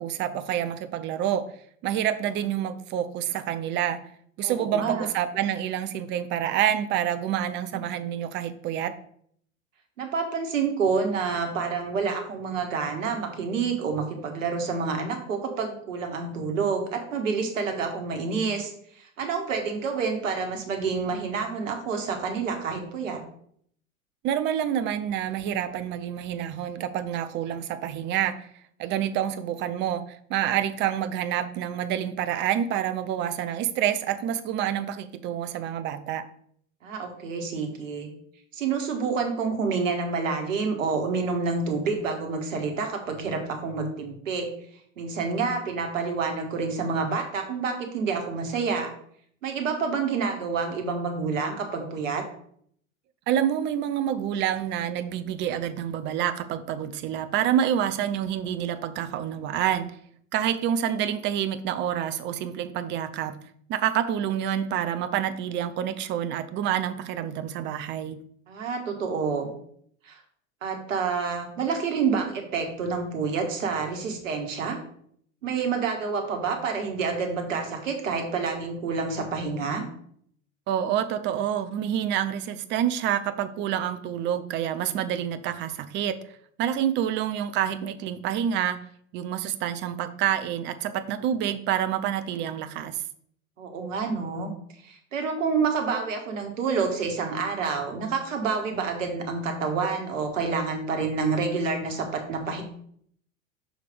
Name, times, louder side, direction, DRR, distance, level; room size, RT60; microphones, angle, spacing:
voice 1, 0.0-1.5 1.8-4.0 4.4-8.9 24.2-28.5 28.8-36.2 53.3-59.9 60.3-63.4 63.7-68.2 80.7-86.2 86.6-88.8 89.1-93.0, right 10 dB, 30° right, 11 dB, 0.5 m, -27 dB
voice 2, 4.4-5.1 10.0-23.2 36.8-38.1 38.5-44.5 45.0-48.9 49.4-52.2 68.5-69.5 70.0-70.2 70.6-74.8 75.4-79.8 93.6-94.5 94.8-102.6, right 5 dB, 70° right, 4 dB, 1.4 m, -28 dB
6.3 x 3.3 x 5.0 m, 0.64 s
figure-of-eight pair, 85°, 40 cm